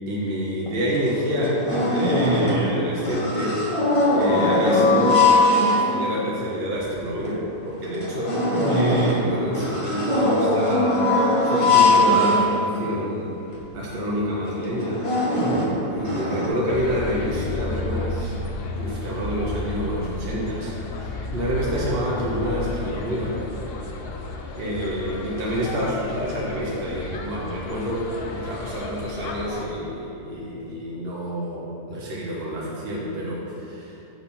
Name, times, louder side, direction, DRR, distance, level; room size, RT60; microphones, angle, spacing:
voice 1, 0.1-3.6 4.1-5.2 5.7-11.0 11.4-13.3 13.7-15.0 15.9-18.3 18.7-23.4 24.6-34.0, equal, 40° right, -6 dB, 1.2 m, -28 dB
sound 1, 0.7-0.8 1.1-2.7 3.0-6.2 6.8-6.9 7.3-7.4 7.8-13.0 13.6-13.7 14.0-14.2 14.6-16.5, left 2 dB, 25° left, 0.9 m, -21 dB
sound 2, 16.7-29.7, left 2 dB, 55° left, 0.6 m, -32 dB
7.7 x 4.6 x 5.5 m, 2.8 s
omnidirectional pair, 1.7 m